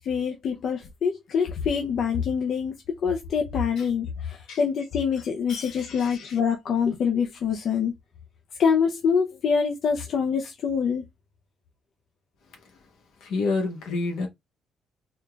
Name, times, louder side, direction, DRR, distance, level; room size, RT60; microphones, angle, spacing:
voice 1, 0.0-2.7 3.0-7.9 8.6-11.0, left 6 dB, 65° left, 0.7 m, -25 dB
voice 2, 5.5-6.4 13.2-14.3, left 3 dB, 85° left, 1.4 m, -29 dB
4.1 x 2.4 x 3.3 m
cardioid pair, 90°, 0 cm